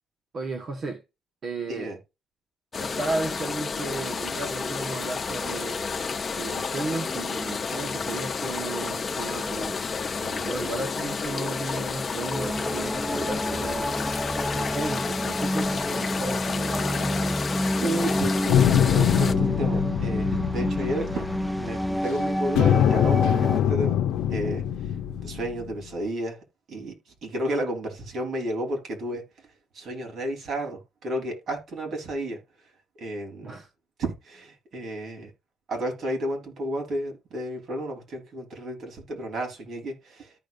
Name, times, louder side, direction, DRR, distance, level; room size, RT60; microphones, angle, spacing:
voice 1, 0.3-1.0 1.4-1.9 2.8-6.1 6.4-9.8 10.1-14.0 14.3-17.4 33.4-33.7, right 3 dB, 50° right, 1.3 m, -34 dB
sound 1, 2.7-19.3, left 5 dB, 35° left, 1.1 m, -31 dB
sound 2, 12.3-23.6, equal, ahead, 0.3 m, -29 dB
voice 2, 17.8-24.0 24.3-24.9 25.2-26.4 26.7-29.2 29.7-32.4 33.0-33.6 34.0-35.3 35.7-40.3, right 1 dB, 65° right, 3.8 m, -32 dB
sound 3, 18.5-22.1 22.5-25.9, left 10 dB, 85° left, 0.7 m, -24 dB
14.0 x 5.2 x 2.6 m
cardioid pair, 90°, 0 cm